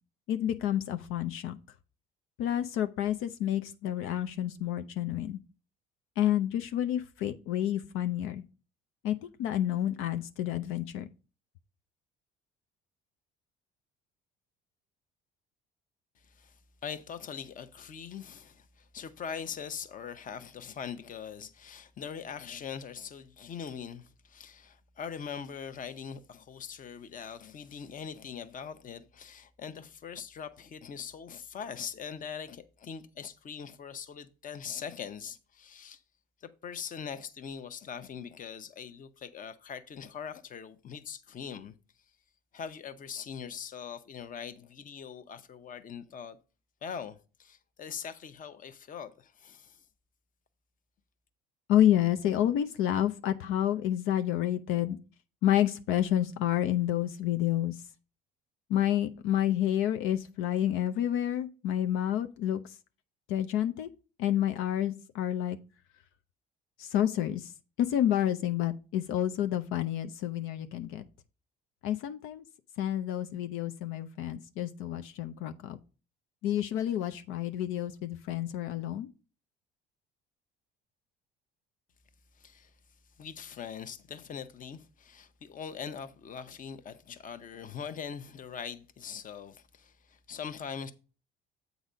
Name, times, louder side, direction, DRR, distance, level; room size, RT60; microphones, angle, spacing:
voice 1, 0.3-1.6 2.4-5.4 6.2-8.4 9.0-11.1 51.7-55.0 55.4-57.8 58.7-62.8 63.3-63.9 64.2-65.6 66.8-67.5 67.8-71.0 71.8-72.4 72.8-75.8 76.4-79.1, left 11 dB, 75° left, 0.6 m, -29 dB
voice 2, 16.2-16.5 16.8-36.0 36.4-41.7 42.5-46.4 46.8-49.8 82.4-82.7 83.2-90.9, left 7 dB, 40° left, 0.8 m, -42 dB
8.1 x 4.0 x 5.1 m
cardioid pair, 105°, 21 cm